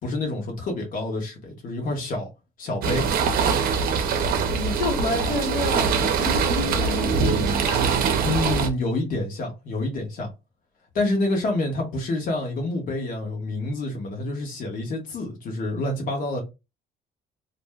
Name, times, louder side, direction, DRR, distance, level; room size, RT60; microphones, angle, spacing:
voice 1, 0.0-2.3 2.6-3.1 8.2-10.3 10.9-16.4, left 2 dB, 55° left, 1.1 m, -27 dB
sound 1, 2.8-8.7, right 5 dB, 60° right, 0.6 m, -23 dB
voice 2, 4.5-7.8, left 3 dB, 85° left, 1.2 m, -29 dB
2.5 x 2.1 x 3.4 m
cardioid pair, 110°, 17 cm